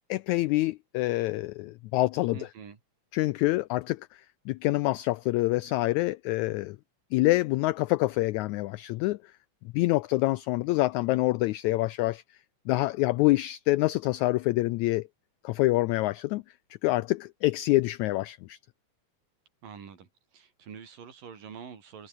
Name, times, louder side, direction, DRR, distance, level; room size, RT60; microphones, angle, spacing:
voice 1, 0.1-2.5 3.1-6.8 7.1-9.2 9.7-12.2 12.7-15.1 15.4-16.4 16.8-18.6, left 19 dB, 85° left, 1.6 m, -26 dB
voice 2, 2.3-2.8 19.6-22.1, right 7 dB, 80° right, 5.2 m, -46 dB
omnidirectional pair, 3.9 m